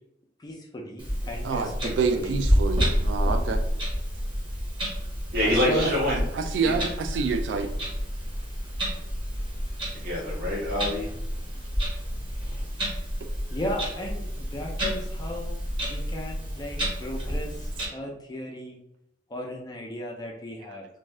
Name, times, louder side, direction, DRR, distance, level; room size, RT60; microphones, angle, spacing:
voice 1, 0.4-2.4 5.5-5.9 13.5-18.8 19.3-20.9, left 1 dB, 20° left, 0 dB, 0.4 m, -35 dB
Clock, 1.0-17.9, equal, 30° right, 1.1 m, -29 dB
voice 2, 1.4-3.6 5.4-7.7, right 5 dB, 80° right, 7 dB, 0.3 m, -28 dB
voice 3, 5.3-6.2 6.6-6.8 10.0-11.1, left 1 dB, 60° right, -5 dB, 1.2 m, -26 dB
2.5 x 2.3 x 3.1 m, 0.80 s
head